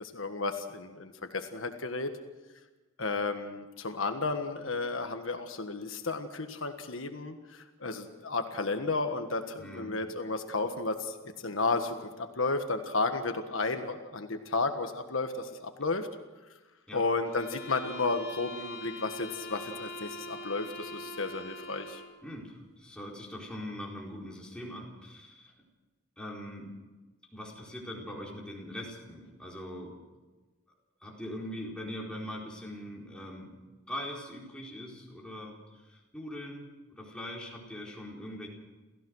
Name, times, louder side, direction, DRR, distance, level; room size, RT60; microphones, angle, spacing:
voice 1, 0.0-2.1 3.0-16.1 16.9-22.0, left 3 dB, 75° left, 6 dB, 1.5 m, -33 dB
voice 2, 9.6-10.0 16.9-17.0 22.2-25.5 26.2-26.7 27.3-30.0 31.0-33.6 33.9-38.5, left 1 dB, 5° left, -4 dB, 4.4 m, -42 dB
sound 1, 17.2-22.2, equal, 50° left, 3.0 m, -42 dB
29.0 x 15.0 x 6.4 m, 1.2 s
head